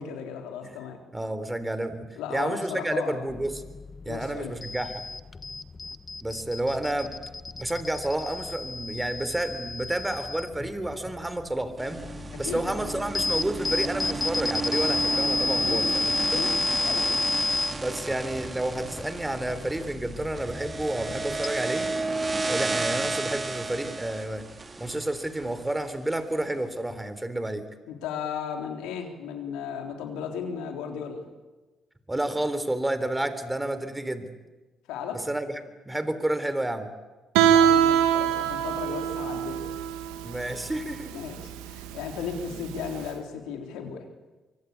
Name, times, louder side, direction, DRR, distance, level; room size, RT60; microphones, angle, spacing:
voice 1, 0.0-1.0 2.2-3.3 4.1-4.5 12.4-12.6 15.5-15.8 16.3-16.5 16.8-17.1 27.9-31.2 34.9-35.2 37.5-39.7 41.1-44.0, left 7 dB, 80° left, 3 dB, 3.8 m, -35 dB
voice 2, 1.1-3.6 4.0-5.0 6.2-7.1 7.6-12.0 12.4-16.4 17.8-21.9 22.4-24.5 24.8-27.7 32.1-34.3 35.3-35.6 35.9-36.9 40.2-41.2 42.5-42.6, right 1 dB, 15° right, 12 dB, 3.6 m, -30 dB
sound 1, 3.3-21.5, left 3 dB, 35° left, 1.4 m, -32 dB
sound 2, 11.8-26.0, right 3 dB, 35° right, 2.8 m, -33 dB
Guitar, 37.3-43.0, right 9 dB, 85° right, 1.7 m, -24 dB
24.0 x 24.0 x 8.6 m, 1.2 s
hypercardioid pair, 50°, 0 cm